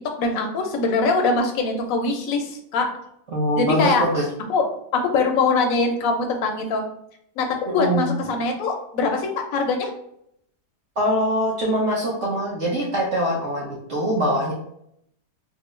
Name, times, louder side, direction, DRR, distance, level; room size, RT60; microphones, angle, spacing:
voice 1, 0.2-2.9 3.5-4.0 4.5-6.8 7.4-7.5 7.7-9.9, left 3 dB, 70° left, 3 dB, 0.8 m, -22 dB
voice 2, 3.3-4.2 7.7-8.1 11.0-14.5, equal, 60° right, -4 dB, 0.7 m, -23 dB
3.7 x 2.1 x 3.1 m, 0.73 s
omnidirectional pair, 1.9 m